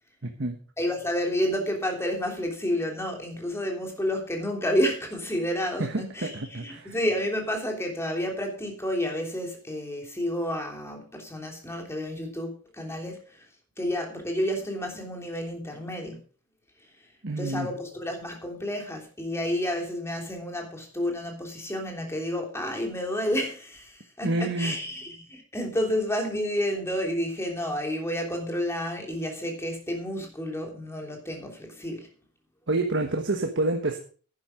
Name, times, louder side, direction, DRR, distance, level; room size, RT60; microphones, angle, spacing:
voice 1, 0.2-0.6 5.8-6.9 17.2-17.7 24.2-24.8 32.7-34.0, right 2 dB, 60° right, 4 dB, 1.4 m, -28 dB
voice 2, 0.8-13.4 13.8-16.2 17.3-32.1, equal, 15° left, 2 dB, 3.3 m, -30 dB
10.5 x 10.5 x 5.1 m, 0.40 s
head